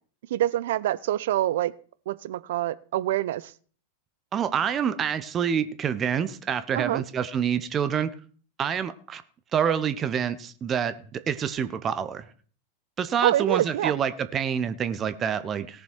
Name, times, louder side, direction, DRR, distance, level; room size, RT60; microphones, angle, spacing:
voice 1, 0.3-1.7 2.1-3.5 6.7-7.0 13.2-13.9, right 13 dB, 55° right, 0.5 m, -25 dB
voice 2, 4.3-8.1 8.6-9.2 9.5-12.2 13.0-15.8, right 8 dB, 25° right, 0.9 m, -27 dB
18.0 x 6.9 x 4.6 m
figure-of-eight pair, 90°, 0 cm